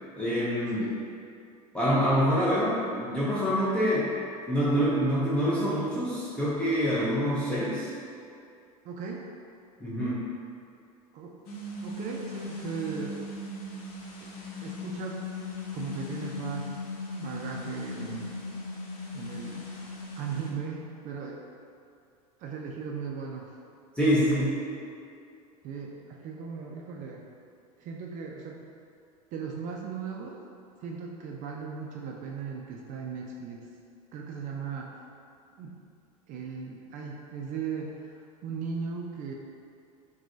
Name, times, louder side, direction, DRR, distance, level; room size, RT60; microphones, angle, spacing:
voice 1, 0.2-0.9 1.7-4.1 4.5-7.9 9.8-10.2 24.0-24.6, equal, 5° left, -9 dB, 0.7 m, -26 dB
voice 2, 8.8-9.3 10.0-10.3 11.1-11.4 11.8-13.2 14.2-14.3 14.6-15.2 15.7-16.8 17.1-18.4 19.1-19.7 20.1-21.4 22.4-23.5 24.0-24.5 25.6-27.3 27.8-28.7 29.3-30.4 30.8-33.7 34.1-35.0 35.6-35.8 36.3-39.3, right 6 dB, 40° right, -1 dB, 0.4 m, -37 dB
sound 1, 11.4-20.5, left 3 dB, 55° left, 0.8 m, -38 dB
5.8 x 2.3 x 2.6 m, 2.4 s
hypercardioid pair, 85°, 20 cm